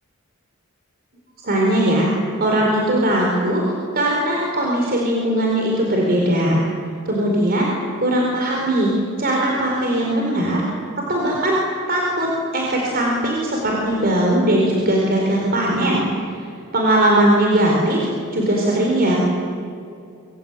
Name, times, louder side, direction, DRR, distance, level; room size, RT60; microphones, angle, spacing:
voice 1, 1.4-2.1 2.4-3.6 3.9-6.6 7.1-7.7 8.0-10.7 11.1-11.6 11.9-16.0 16.7-18.1 18.3-19.2, right 1 dB, 45° right, -1 dB, 4.5 m, -19 dB
27.0 x 22.5 x 9.2 m, 2.6 s
head